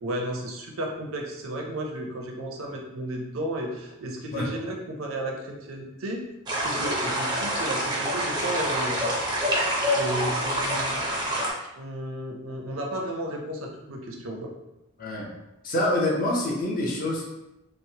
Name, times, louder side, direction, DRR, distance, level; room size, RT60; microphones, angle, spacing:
voice 1, 0.0-6.2 6.6-9.0 9.9-11.0 11.8-14.5, right 1 dB, 80° right, 1 dB, 0.5 m, -33 dB
sound 1, 6.5-11.5, equal, 20° right, 0.4 m, -26 dB
voice 2, 15.0-15.3 15.6-17.3, left 1 dB, 45° left, -3 dB, 0.6 m, -26 dB
3.0 x 2.0 x 2.7 m, 0.91 s
head